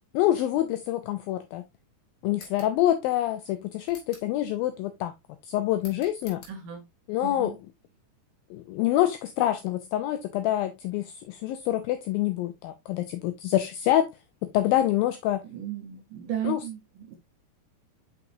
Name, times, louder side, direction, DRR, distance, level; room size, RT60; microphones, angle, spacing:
voice 1, 0.1-1.7 2.2-5.1 5.5-6.4 7.1-7.5 8.5-14.1 14.4-15.4 16.4-16.6, left 13 dB, 90° left, 2.1 m, -26 dB
sound 1, 2.3-2.8 3.8-4.3 5.8-6.6, left 4 dB, 55° left, 3.5 m, -49 dB
voice 2, 6.5-6.8 7.2-7.6 15.5-17.2, right 9 dB, 70° right, 2.0 m, -35 dB
6.1 x 6.0 x 2.6 m
omnidirectional pair, 4.7 m